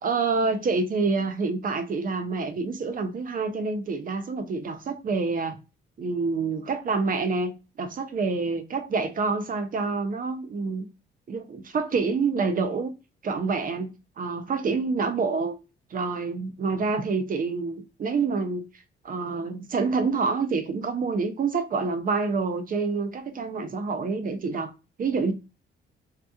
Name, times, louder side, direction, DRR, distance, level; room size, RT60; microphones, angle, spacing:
voice 1, 0.0-5.6 6.0-10.9 11.3-12.9 13.2-13.9 14.2-15.6 15.9-18.7 19.0-24.7 25.0-25.3, right 4 dB, 45° right, 0.7 m, -27 dB
2.8 x 2.4 x 3.5 m
cardioid pair, 90°, 20 cm